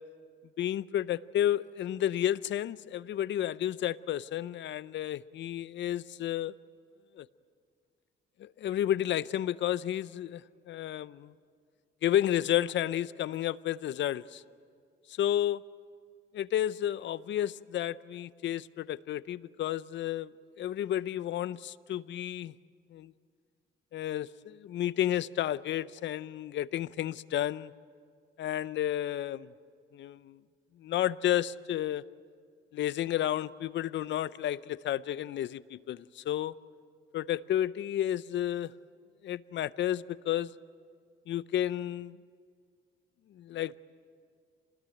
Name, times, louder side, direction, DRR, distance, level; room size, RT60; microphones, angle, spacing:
voice 1, 0.6-6.5 7.2-7.3 8.4-10.4 10.7-11.3 12.0-14.4 15.2-15.6 16.3-22.5 22.9-23.1 23.9-27.7 28.4-29.5 29.9-30.4 30.8-32.0 32.7-36.6 37.1-38.7 39.2-40.5 41.3-42.2 43.3-43.8, left 11 dB, 65° left, 18 dB, 0.6 m, -31 dB
26.5 x 19.5 x 9.1 m, 2.1 s
cardioid pair, 90°, 20 cm